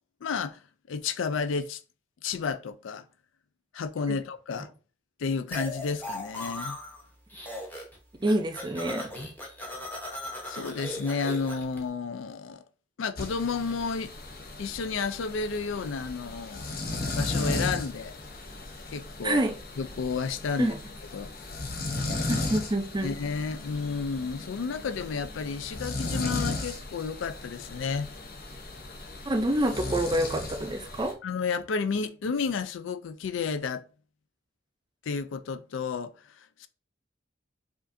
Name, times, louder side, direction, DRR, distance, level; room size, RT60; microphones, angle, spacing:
voice 1, 0.2-0.6 0.9-1.8 2.2-3.0 3.7-4.7 5.2-6.8 10.5-12.6 13.0-14.1 14.6-16.8 17.1-18.2 18.9-19.4 19.8-20.7 21.1-21.3 23.0-28.1 31.2-33.9 35.1-36.7, left 5 dB, 80° left, 0.4 m, -31 dB
sound 1, 5.5-7.0 7.3-11.8, left 1 dB, 10° left, 0.8 m, -38 dB
voice 2, 8.2-9.1 19.2-19.5 20.6-20.8 22.3-23.2 29.3-31.2, right 1 dB, 20° right, 0.5 m, -27 dB
sound 2, 13.2-31.1, left 2 dB, 50° left, 0.7 m, -35 dB
5.0 x 2.5 x 2.6 m
head